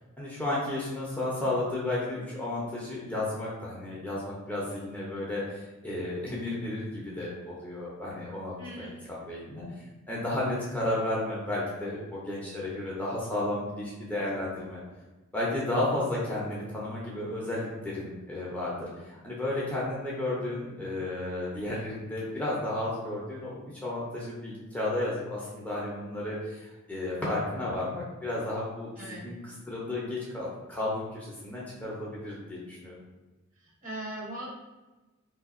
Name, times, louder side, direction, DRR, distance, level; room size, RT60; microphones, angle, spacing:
voice 1, 0.2-9.7 10.1-14.8 15.3-32.9, left 1 dB, 5° left, -6 dB, 0.6 m, -33 dB
voice 2, 8.6-8.9 29.0-29.3 33.8-34.5, right 1 dB, 40° right, -5 dB, 1.0 m, -39 dB
3.6 x 2.7 x 2.4 m, 1.2 s
head